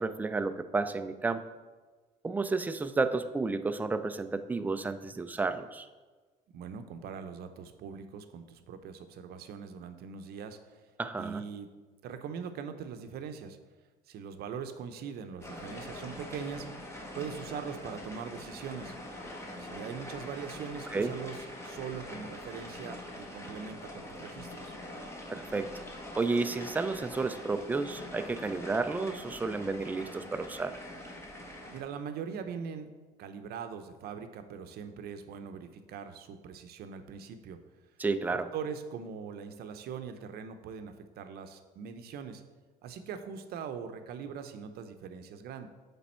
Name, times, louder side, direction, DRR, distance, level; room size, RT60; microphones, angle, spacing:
voice 1, 0.0-1.4 2.2-5.9 11.0-11.4 20.9-21.1 25.3-25.7 26.2-30.8 38.0-38.5, right 3 dB, 10° right, 10 dB, 0.3 m, -31 dB
voice 2, 6.5-10.8 11.2-11.7 12.0-13.6 14.1-16.7 17.1-19.0 19.6-24.8 31.7-32.9 33.2-37.6 38.5-42.4 42.8-45.7, right 6 dB, 70° right, 9 dB, 0.6 m, -41 dB
sound 1, 15.4-31.8, left 1 dB, 15° left, 1.1 m, -44 dB
sound 2, 18.0-27.0, left 3 dB, 55° left, 0.9 m, -56 dB
8.3 x 3.4 x 4.3 m, 1.3 s
cardioid pair, 110°, 17 cm